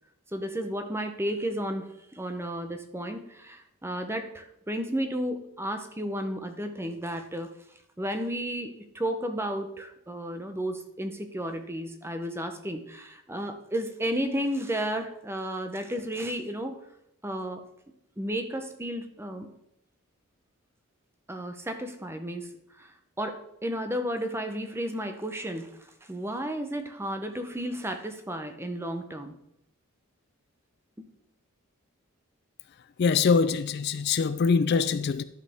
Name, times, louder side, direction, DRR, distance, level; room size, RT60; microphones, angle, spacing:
voice 1, 0.3-7.5 8.0-16.8 17.2-17.6 18.2-19.5 21.3-22.5 22.8-22.9 23.2-29.3 31.0-31.1, equal, 10° right, 0.7 m, -33 dB
voice 2, 33.0-35.2, left 5 dB, 50° left, 0.3 m, -23 dB
11.5 x 6.4 x 3.5 m
head